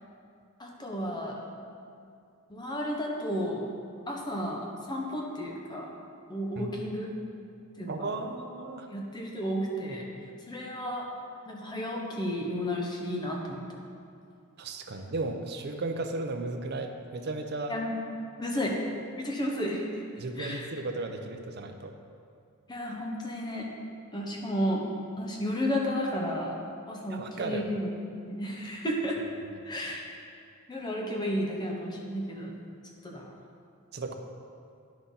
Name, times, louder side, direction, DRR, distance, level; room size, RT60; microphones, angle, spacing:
voice 1, 0.6-1.4 2.5-3.7 4.1-5.9 6.3-7.1 7.8-8.1 8.9-10.1 10.5-11.0 11.5-13.6 17.7-18.0 18.4-18.8 19.2-19.8 20.4-20.6 22.7-23.7 24.1-24.8 25.2-26.5 26.9-27.9 28.2-29.2 29.6-30.0 30.7-32.5 33.0-33.2, equal, 20° left, -1 dB, 1.0 m, -32 dB
voice 2, 7.9-8.9 14.6-17.7 20.2-21.9 27.1-27.6 33.9-34.1, right 2 dB, 50° right, 5 dB, 0.6 m, -35 dB
9.8 x 6.2 x 3.9 m, 2.4 s
head